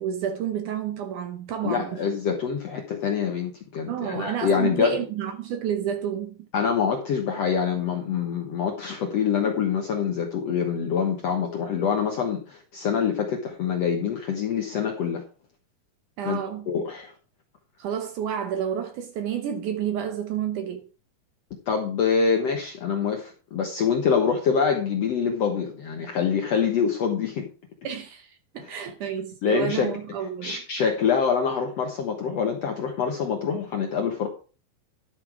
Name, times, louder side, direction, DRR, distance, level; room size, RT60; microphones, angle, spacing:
voice 1, 0.0-2.0 3.9-6.5 16.2-16.7 17.8-20.8 27.8-30.6, right 9 dB, 70° right, 2.1 m, -30 dB
voice 2, 1.6-5.0 6.5-15.2 16.2-16.4 16.7-17.1 21.7-27.5 28.6-28.7 29.4-30.0 30.4-34.3, left 6 dB, 65° left, 1.6 m, -25 dB
12.0 x 6.2 x 4.8 m
omnidirectional pair, 4.4 m